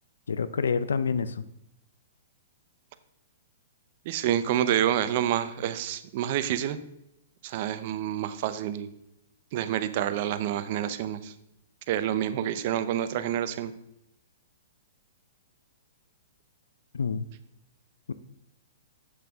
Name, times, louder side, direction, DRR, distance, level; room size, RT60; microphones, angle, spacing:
voice 1, 0.3-1.4 16.9-17.3 18.1-18.2, left 5 dB, 90° left, 14 dB, 0.5 m, -27 dB
voice 2, 4.1-6.8 7.4-8.9 9.5-11.3 11.9-13.7, right 11 dB, 50° right, 12 dB, 0.6 m, -28 dB
7.9 x 6.6 x 3.5 m, 0.80 s
hypercardioid pair, 140°, 0 cm